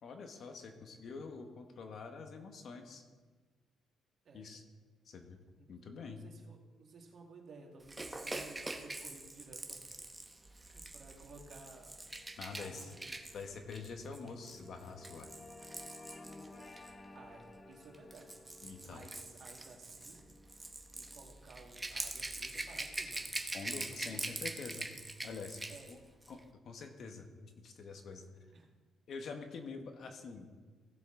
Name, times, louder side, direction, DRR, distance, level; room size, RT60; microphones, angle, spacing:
voice 1, 0.0-3.0 4.3-4.6 5.0-6.2 12.4-12.9 13.3-15.3 18.6-19.0 23.5-24.9 25.2-25.6 25.9-26.0 26.3-28.3 29.1-30.5, left 4 dB, 60° left, 5 dB, 1.3 m, -46 dB
voice 2, 6.1-9.8 10.6-11.9 12.6-13.3 17.1-18.4 18.8-20.3 20.8-23.4 23.9-24.2 25.7-25.9 28.5-28.7, right 3 dB, 55° right, 1 dB, 2.0 m, -56 dB
Rattle / Rattle (instrument), 7.9-16.9 17.8-25.9 26.2-26.4, right 2 dB, 15° right, 1.0 m, -44 dB
sound 1, 10.5-23.1, left 2 dB, 30° left, 0.7 m, -57 dB
16.5 x 7.1 x 3.8 m, 1.4 s
cardioid pair, 90°, 0 cm